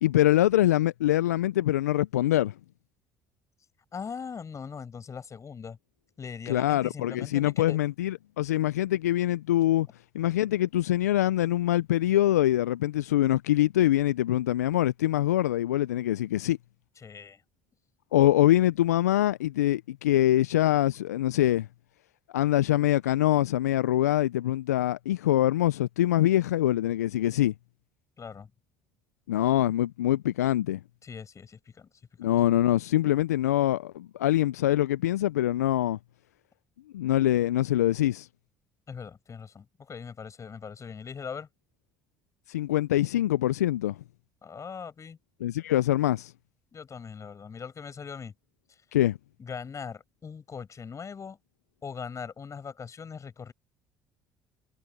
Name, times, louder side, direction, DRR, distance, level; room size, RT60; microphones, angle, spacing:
voice 1, 0.0-2.5 6.5-9.9 10.1-16.6 18.1-21.7 22.3-27.5 29.3-30.8 32.2-36.0 36.9-38.3 42.5-44.0 45.4-46.3 48.9-49.2, left 13 dB, 85° left, 0.7 m, -24 dB
voice 2, 3.9-5.8 6.2-7.8 17.0-17.4 28.2-28.5 31.0-31.9 32.2-32.3 38.9-41.5 44.4-45.2 46.7-48.3 49.4-51.4 51.8-53.5, left 6 dB, 40° left, 7.9 m, -40 dB
hypercardioid pair, 55°, 8 cm